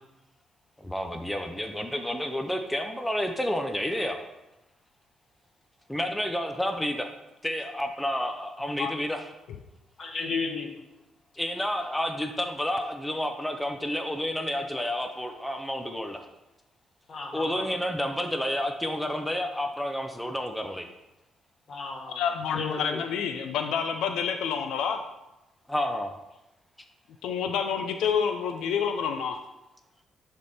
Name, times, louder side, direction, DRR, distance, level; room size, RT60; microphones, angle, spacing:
voice 1, 0.8-4.3 5.9-7.1 7.4-9.3 11.4-16.3 17.3-20.9 25.7-26.1, left 1 dB, 5° left, 5 dB, 0.6 m, -30 dB
voice 2, 10.0-10.7 17.1-17.7 21.7-22.2 22.5-23.0, left 4 dB, 45° left, 2 dB, 1.4 m, -33 dB
voice 3, 22.1-25.0 27.2-29.4, left 7 dB, 85° left, 6 dB, 0.4 m, -28 dB
9.6 x 3.5 x 4.2 m, 0.96 s
cardioid pair, 90°, 0 cm